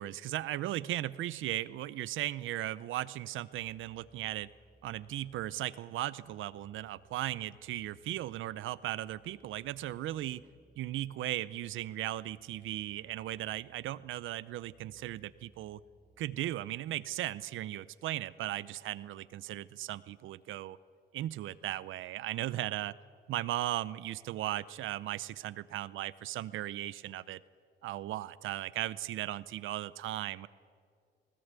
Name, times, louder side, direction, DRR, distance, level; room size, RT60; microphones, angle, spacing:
voice 1, 0.0-4.5 4.8-10.4 10.8-15.8 16.2-20.8 21.1-22.9 23.3-27.4 27.8-30.5, right 14 dB, 80° right, 18 dB, 0.7 m, -37 dB
sound 1, 3.5-17.4, right 3 dB, 25° right, 2.4 m, -66 dB
19.5 x 19.5 x 8.3 m, 2.2 s
cardioid pair, 90°, 20 cm